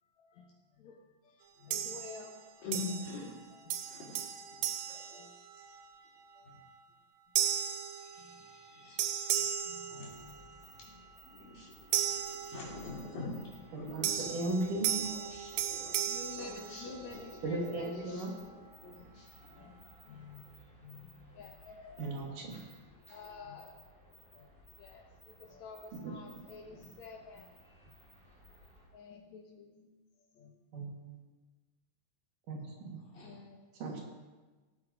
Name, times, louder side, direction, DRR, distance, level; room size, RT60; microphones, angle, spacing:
voice 1, 0.0-0.5 0.7-2.6 3.7-3.9 5.1-5.4 6.4-6.5 8.2-8.8 9.4-11.1 14.1-14.9 15.9-18.5 19.0-19.1 19.5-20.4 20.8-22.4 22.9-23.8 24.3-27.8 28.9-29.9 30.3-30.6 33.2-33.7, left 4 dB, 65° left, 2 dB, 2.1 m, -51 dB
sound 1, 1.7-2.4 2.7-3.4 3.7-5.9 6.4-6.7 7.4-8.7 9.0-10.6 11.9-13.1 14.0-17.3, right 10 dB, 90° right, 2.5 m, -36 dB
voice 2, 2.6-3.3 3.8-4.2 4.5-4.6 4.9-5.0 6.4-6.6 8.0-9.4 10.0-10.1 11.2-11.7 12.0-12.1 12.3-13.5 13.7-14.3 14.9-17.2 17.7-19.7 33.0-33.3, left 3 dB, 80° left, -6 dB, 5.6 m, -45 dB
sound 2, 10.0-28.9, left 1 dB, ahead, 3.0 m, -59 dB
voice 3, 13.7-15.1 17.4-18.3 22.0-22.6 26.0-26.1 26.7-26.9 30.7-31.2 32.5-33.0 33.7-34.0, right 2 dB, 70° right, -1 dB, 3.6 m, -37 dB
18.0 x 7.8 x 5.1 m, 1.3 s
omnidirectional pair, 3.9 m